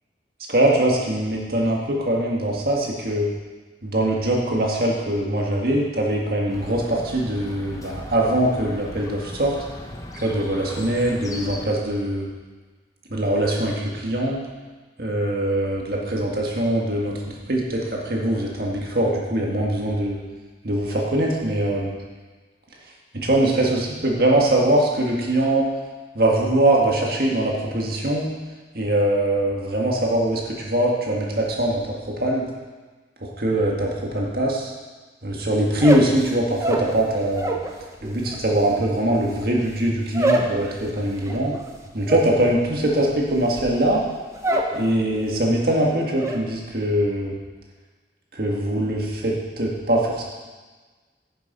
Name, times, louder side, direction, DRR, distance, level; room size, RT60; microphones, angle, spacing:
voice 1, 0.5-3.3 3.8-9.6 10.1-12.3 13.1-14.5 15.0-20.2 20.6-21.9 23.3-25.7 26.1-28.3 28.7-32.5 33.2-34.7 35.2-37.5 38.0-41.6 41.9-44.0 44.7-47.4 48.3-50.2, right 1 dB, 60° right, -2 dB, 1.9 m, -22 dB
Chirp tweet, 6.5-11.7, left 1 dB, 20° left, 0.8 m, -38 dB
sound 1, 35.7-37.7 38.0-44.8 45.1-45.6 45.9-46.4, right 1 dB, 15° right, 0.8 m, -26 dB
9.9 x 7.0 x 5.4 m, 1.3 s
head